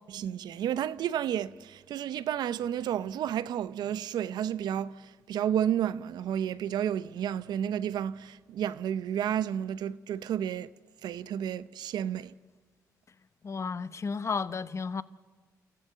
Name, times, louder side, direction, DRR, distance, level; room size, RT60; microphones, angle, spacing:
voice 1, 0.1-10.7 11.0-12.3, right 10 dB, 75° right, 0.7 m, -31 dB
voice 2, 13.4-15.0, left 5 dB, 40° left, 1.0 m, -33 dB
30.0 x 14.0 x 9.2 m
supercardioid pair, 60°, 7 cm